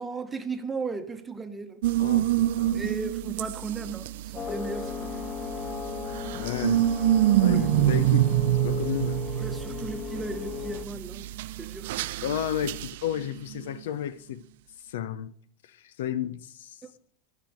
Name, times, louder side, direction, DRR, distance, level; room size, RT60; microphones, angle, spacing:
voice 1, 0.0-1.8 2.7-5.2 7.5-7.7 9.4-12.3, right 4 dB, 15° right, 1.0 m, -36 dB
sound 1, 1.8-13.6, right 14 dB, 70° right, 0.4 m, -27 dB
voice 2, 2.0-2.9 6.3-6.9 7.4-8.3 8.6-9.2 12.2-14.4 14.9-15.3 15.7-16.8, left 10 dB, 85° left, 0.5 m, -32 dB
sound 2, 4.4-10.9, left 8 dB, 30° left, 0.4 m, -36 dB
12.0 x 5.9 x 5.1 m
supercardioid pair, 130°, 0 cm